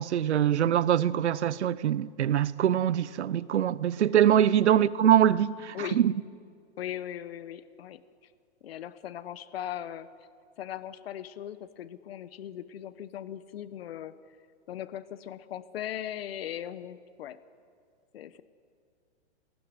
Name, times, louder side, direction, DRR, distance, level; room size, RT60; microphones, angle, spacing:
voice 1, 0.0-6.1, right 10 dB, 80° right, 1.0 m, -23 dB
voice 2, 6.8-8.0 8.6-10.1 10.6-14.4 14.7-17.4 18.1-18.4, left 11 dB, 60° left, 1.2 m, -39 dB
28.5 x 19.0 x 9.7 m
hypercardioid pair, 160°, 33 cm